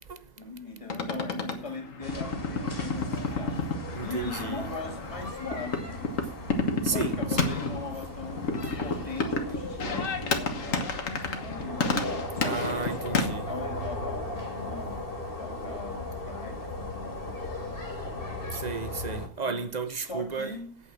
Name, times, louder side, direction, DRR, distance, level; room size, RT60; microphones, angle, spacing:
voice 1, 0.4-3.7 4.0-6.0 6.8-12.0 12.3-15.1 15.4-18.5 19.4-19.7 20.0-20.8, left 3 dB, 25° left, 2.0 m, -40 dB
sound 1, 0.9-13.3, left 3 dB, 70° left, 1.8 m, -31 dB
sound 2, 2.0-19.3, left 2 dB, 40° left, 2.5 m, -37 dB
voice 2, 3.9-4.6 6.8-7.5 12.4-13.5 18.5-20.6, right 5 dB, 35° right, 0.9 m, -33 dB
8.5 x 8.4 x 7.3 m
omnidirectional pair, 1.4 m